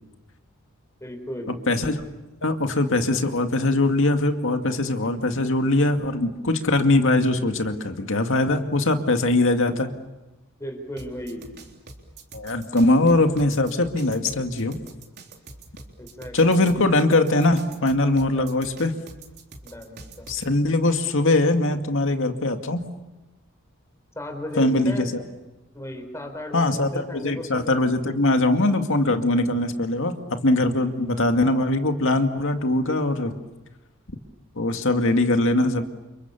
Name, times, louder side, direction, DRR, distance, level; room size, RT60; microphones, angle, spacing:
voice 1, 1.0-1.5 10.6-11.5 16.0-17.1 18.4-18.6 19.6-20.3 24.1-25.1 25.7-27.8 30.7-30.9, left 1 dB, 15° left, 5 dB, 4.7 m, -36 dB
voice 2, 1.7-2.0 2.4-9.9 12.3-14.8 16.3-18.9 20.3-22.8 24.6-25.1 26.5-33.3 34.6-35.8, left 2 dB, 65° left, 6 dB, 2.2 m, -21 dB
sound 1, 11.0-20.5, right 3 dB, 50° right, 3.6 m, -44 dB
29.5 x 28.0 x 7.1 m, 1.0 s
head